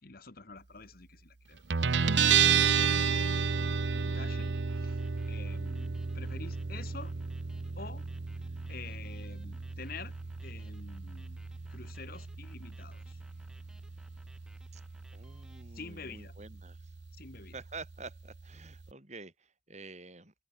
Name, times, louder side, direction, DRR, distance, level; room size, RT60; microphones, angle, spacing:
voice 1, 0.0-3.3 3.8-5.0 5.3-7.1 7.7-8.1 8.7-10.1 10.4-11.4 11.7-13.2 15.7-16.3 17.2-17.5, left 4 dB, 50° left, 1.5 m, -48 dB
Guitar, 1.7-18.9, right 6 dB, 65° right, 0.7 m, -32 dB
sound 1, 3.2-15.6, equal, 5° right, 6.2 m, -63 dB
voice 2, 15.1-16.9 17.5-20.3, right 3 dB, 35° right, 6.3 m, -48 dB
head